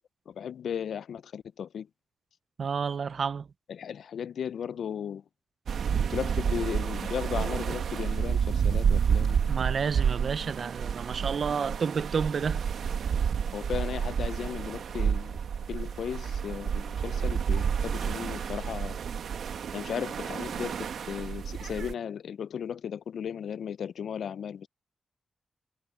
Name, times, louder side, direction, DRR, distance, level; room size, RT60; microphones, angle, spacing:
voice 1, 0.3-1.9 3.7-5.2 5.9-9.5 13.5-15.4 15.7-19.0 19.7-20.8 21.1-24.7, left 8 dB, 90° left, 0.4 m, -36 dB
voice 2, 2.6-3.5 9.5-12.6, right 6 dB, 50° right, 0.5 m, -30 dB
sound 1, 5.7-21.9, right 7 dB, 80° right, 1.4 m, -30 dB
wide cardioid pair, 160°, 0 cm